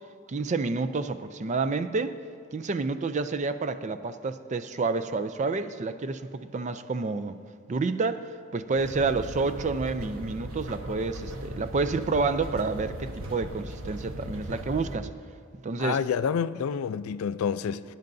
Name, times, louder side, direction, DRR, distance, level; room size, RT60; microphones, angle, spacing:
voice 1, 0.3-2.1 2.5-7.4 7.7-8.3 8.5-15.1 15.6-16.0, right 4 dB, 35° right, 0.4 m, -29 dB
sound 1, 8.8-15.0, equal, 80° right, 1.2 m, -38 dB
voice 2, 15.8-17.8, left 7 dB, 85° left, 0.4 m, -28 dB
21.0 x 10.5 x 2.6 m
head